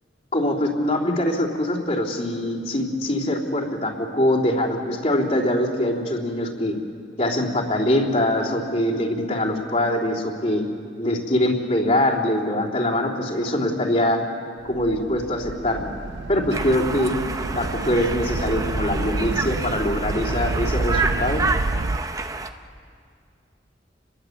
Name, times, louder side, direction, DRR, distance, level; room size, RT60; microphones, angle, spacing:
voice 1, 0.3-6.8 7.2-10.6 11.0-14.2 14.6-15.9 16.3-17.1 17.5-21.4, left 1 dB, 40° left, -5 dB, 3.5 m, -23 dB
sound 1, 14.7-22.0, right 2 dB, 80° right, 0.7 m, -29 dB
Conversation, 16.5-22.5, right 3 dB, 20° right, 0.8 m, -29 dB
29.5 x 21.5 x 8.2 m, 2.3 s
head